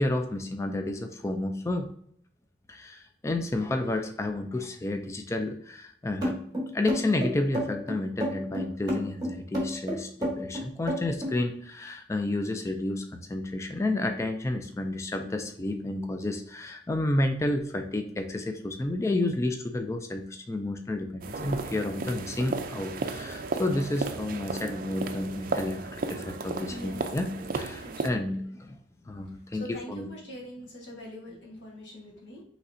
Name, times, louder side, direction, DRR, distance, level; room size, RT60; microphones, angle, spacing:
voice 1, 0.0-1.9 2.7-6.4 6.7-28.8 29.1-30.1, left 2 dB, 15° left, 6 dB, 0.3 m, -31 dB
sound 1, 6.2-11.4, equal, 20° right, 1.3 m, -30 dB
sound 2, 21.2-28.1, right 3 dB, 50° right, 0.4 m, -34 dB
voice 2, 26.7-27.0 27.8-28.5 29.5-32.4, equal, 85° left, -2 dB, 1.4 m, -43 dB
5.4 x 3.2 x 2.6 m, 0.65 s
head